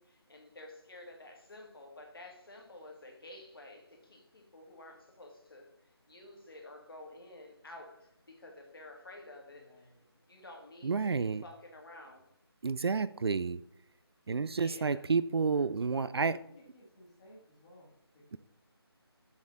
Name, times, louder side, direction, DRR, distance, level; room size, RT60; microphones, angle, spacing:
voice 1, 0.0-5.7 6.1-9.9 10.3-12.3 14.5-15.0, left 1 dB, 60° left, 2 dB, 2.0 m, -51 dB
voice 2, 9.5-10.0 15.5-17.9, equal, 15° left, -4 dB, 1.5 m, -56 dB
voice 3, 10.8-11.4 12.6-13.6 14.3-16.4, right 4 dB, 70° right, 16 dB, 0.4 m, -30 dB
7.2 x 6.3 x 3.8 m, 0.72 s
figure-of-eight pair, 175°, 14 cm